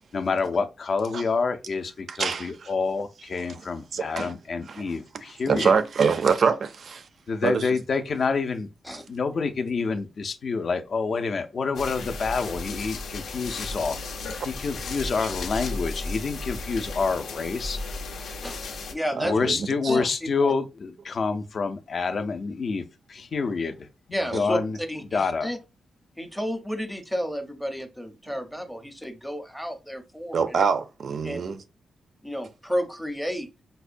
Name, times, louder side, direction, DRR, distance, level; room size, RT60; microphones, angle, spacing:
voice 1, 0.1-5.8 7.3-8.7 9.1-14.0 14.4-17.8 19.2-22.8 23.1-24.8 25.1-25.5, left 4 dB, 45° left, 0.4 m, -27 dB
voice 2, 2.1-2.7 3.5-3.6 3.9-4.3 4.7-4.9 5.5-7.0 7.4-7.7 19.2-19.6 19.8-20.1 24.3-24.4 30.3-31.6, right 5 dB, 55° right, 0.4 m, -25 dB
sound 1, 11.7-18.9, left 3 dB, 90° left, 0.6 m, -34 dB
voice 3, 18.9-19.5 19.9-20.0 20.4-20.5 24.1-25.6 26.2-30.6 31.2-31.4 32.2-33.5, equal, ahead, 0.6 m, -31 dB
5.3 x 2.1 x 2.5 m
wide cardioid pair, 145°, 0 cm